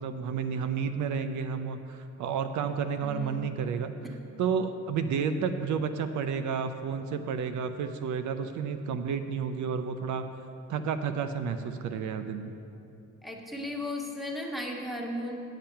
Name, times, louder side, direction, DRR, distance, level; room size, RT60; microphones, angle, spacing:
voice 1, 0.0-3.9 4.4-10.3 10.7-12.5, right 6 dB, 75° right, 9 dB, 0.5 m, -31 dB
voice 2, 3.0-3.4 4.0-4.1 13.2-15.4, left 1 dB, ahead, 0 dB, 1.3 m, -35 dB
9.0 x 7.3 x 5.6 m, 2.7 s
cardioid pair, 90°, 30 cm